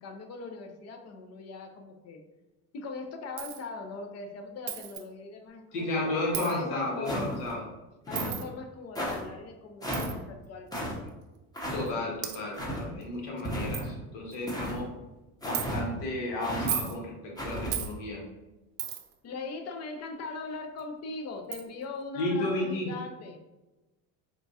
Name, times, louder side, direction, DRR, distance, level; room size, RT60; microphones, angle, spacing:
voice 1, 0.0-2.2 2.7-7.5 8.1-11.2 19.2-23.4, left 3 dB, 35° left, 4 dB, 0.6 m, -40 dB
Coin (dropping), 3.4-3.6 4.7-5.0 6.3-6.6 8.1-8.4 9.9-10.1 11.1-11.2 11.9-12.0 12.2-12.4 13.0-13.1 13.4-13.5 13.7-13.9 14.3-14.6 15.5-15.7 16.5-17.0 17.7-17.9 18.8-19.1 20.8-20.9 21.5-21.6, right 11 dB, 75° right, 0.6 m, -34 dB
voice 2, 5.7-7.6 11.7-14.9 15.4-18.2 22.1-22.9, left 1 dB, 70° left, -2 dB, 1.3 m, -33 dB
sound 1, 7.0-7.5 8.1-8.4 9.0-9.2 9.8-10.1 10.7-10.9 11.5-11.8 12.5-12.8 13.4-13.9 14.5-14.8 15.4-15.8 16.4-16.7 17.4-17.7, equal, 10° left, 0.8 m, -33 dB
4.3 x 2.4 x 2.6 m, 1.1 s
supercardioid pair, 110°, 43 cm